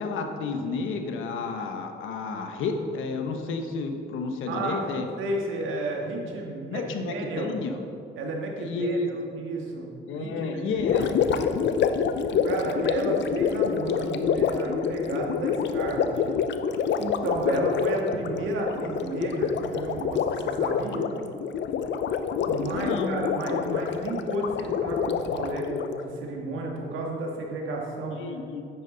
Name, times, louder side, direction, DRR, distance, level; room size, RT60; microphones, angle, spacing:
voice 1, 0.0-5.1 6.7-7.8 8.6-9.1 10.1-11.2 22.7-23.2 28.2-28.6, left 4 dB, 85° left, 5 dB, 1.1 m, -31 dB
voice 2, 4.5-4.9 5.2-7.5 8.2-10.5 10.9-11.1 12.4-16.2 17.0-21.1 22.5-28.2, right 2 dB, 80° right, 0 dB, 1.9 m, -32 dB
Gurgling, 10.8-26.1, left 7 dB, 65° left, 0.6 m, -27 dB
10.0 x 9.1 x 3.9 m, 2.5 s
cardioid pair, 90°, 20 cm